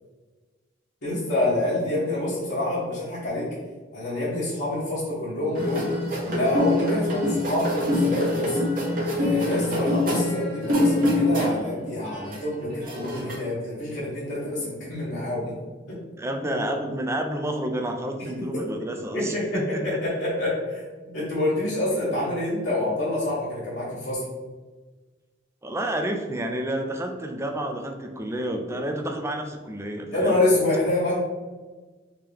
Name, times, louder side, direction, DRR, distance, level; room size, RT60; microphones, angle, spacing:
voice 1, 1.0-3.5 3.9-5.9 6.2-8.6 9.1-15.5 15.9-16.0 19.1-20.8 21.1-24.2 30.1-31.1, left 1 dB, 70° left, -11 dB, 1.2 m, -27 dB
sound 1, 5.5-11.7 12.0-13.3, left 1 dB, 50° right, 1.1 m, -25 dB
voice 2, 16.2-20.0 25.6-30.4, right 1 dB, 15° right, 4 dB, 0.4 m, -30 dB
3.7 x 2.9 x 3.4 m, 1.3 s
head